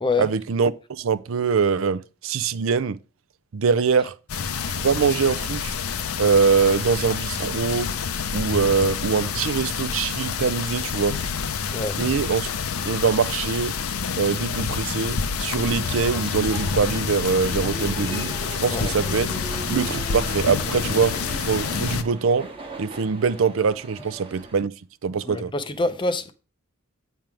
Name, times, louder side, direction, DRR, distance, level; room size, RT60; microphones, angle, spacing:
voice 1, 0.2-3.0 3.5-4.1 4.7-5.7 6.2-7.9 8.3-11.2 12.0-12.5 12.8-13.7 14.2-18.3 18.6-19.3 19.7-21.1 21.4-22.5 22.8-24.7 25.0-25.5, right 5 dB, 65° right, 0.5 m, -23 dB
sound 1, 4.3-22.0, left 6 dB, 80° left, 0.7 m, -28 dB
sound 2, 15.8-24.6, right 2 dB, 25° right, 1.1 m, -38 dB
voice 2, 25.3-26.3, left 3 dB, 20° left, 0.5 m, -26 dB
8.9 x 3.6 x 6.0 m
head